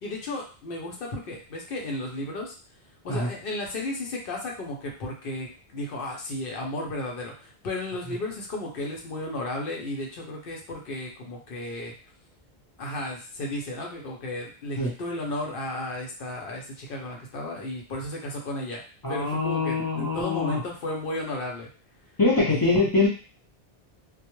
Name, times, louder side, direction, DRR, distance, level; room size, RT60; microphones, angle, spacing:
voice 1, 0.0-2.5 3.0-11.9 12.8-18.8 19.1-21.7 22.5-22.8, left 1 dB, 65° left, -1 dB, 0.8 m, -34 dB
voice 2, 19.0-20.6 22.2-23.1, left 3 dB, 30° left, -4 dB, 0.5 m, -23 dB
2.2 x 2.0 x 2.9 m, 0.37 s
omnidirectional pair, 1.0 m